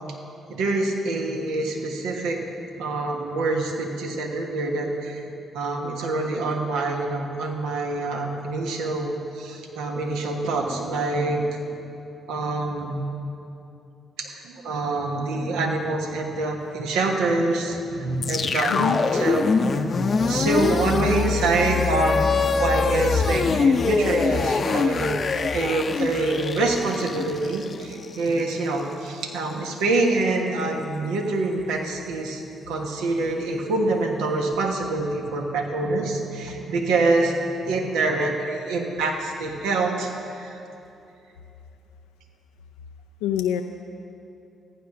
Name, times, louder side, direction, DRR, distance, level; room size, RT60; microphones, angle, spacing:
voice 1, 0.5-2.4 2.8-5.2 5.5-9.1 9.3-11.6 12.3-13.1 14.2-19.5 19.7-19.8 20.3-37.3 37.6-40.6, right 2 dB, 80° right, 1 dB, 1.3 m, -25 dB
sound 1, 18.2-28.4, left 4 dB, 50° left, 0.6 m, -24 dB
voice 2, 18.7-19.0 19.9-20.5 43.2-43.6, left 10 dB, 85° left, 5 dB, 0.4 m, -28 dB
14.5 x 10.0 x 6.0 m, 2.8 s
hypercardioid pair, 50°, 0 cm